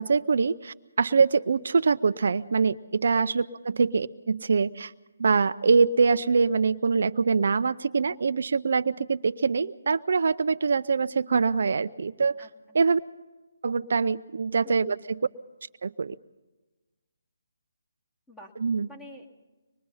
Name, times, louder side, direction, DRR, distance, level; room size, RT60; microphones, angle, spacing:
voice 1, 0.0-4.9 5.2-12.4 12.7-13.0 13.6-15.2 15.8-16.1 18.6-18.9, right 5 dB, 65° right, 12 dB, 0.6 m, -24 dB
voice 2, 12.4-12.8 14.6-15.0 18.3-18.5 18.9-19.3, left 1 dB, 10° left, 1 dB, 2.5 m, -49 dB
24.5 x 21.5 x 5.6 m, 1.2 s
hypercardioid pair, 160°, 0 cm